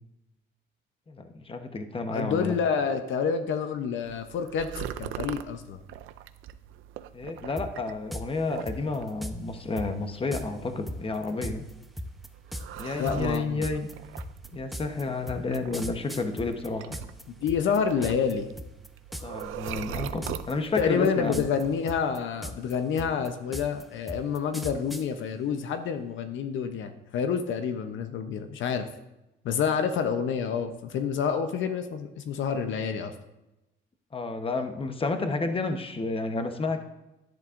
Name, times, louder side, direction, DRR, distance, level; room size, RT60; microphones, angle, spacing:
voice 1, 1.1-2.6 7.1-11.6 12.8-13.9 14.5-17.0 19.2-21.5 34.1-36.8, left 3 dB, 25° left, 6 dB, 1.0 m, -31 dB
voice 2, 2.1-5.8 12.9-13.7 17.4-18.5 20.8-28.9 29.4-33.1, left 6 dB, 75° left, 8 dB, 0.8 m, -28 dB
sound 1, 4.0-22.1, right 11 dB, 85° right, 0.5 m, -42 dB
sound 2, 7.6-7.7 8.1-8.3 8.7-9.4 9.8-9.9 10.3-10.5 10.9-17.2 17.5-18.3 18.6-18.9 19.1-19.4 19.7-20.5 20.8-21.6 21.9-25.1, equal, ahead, 0.7 m, -37 dB
11.0 x 10.5 x 2.5 m, 0.96 s
cardioid pair, 90°, 20 cm